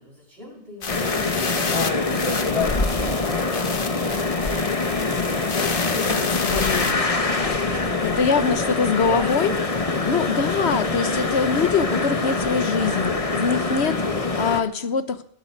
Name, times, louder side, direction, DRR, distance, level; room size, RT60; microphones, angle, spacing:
voice 1, 0.0-5.4 7.3-8.2 9.0-9.5 10.0-10.1, equal, 70° right, 7.5 m, -40 dB
sound 1, 0.8-6.9, left 5 dB, 60° left, 1.4 m, -31 dB
sound 2, 0.9-14.6, left 3 dB, 35° left, 1.3 m, -24 dB
voice 2, 5.9-7.0 8.2-9.5 9.9-15.2, left 5 dB, 85° left, 1.4 m, -24 dB
21.0 x 13.0 x 4.7 m
omnidirectional pair, 1.1 m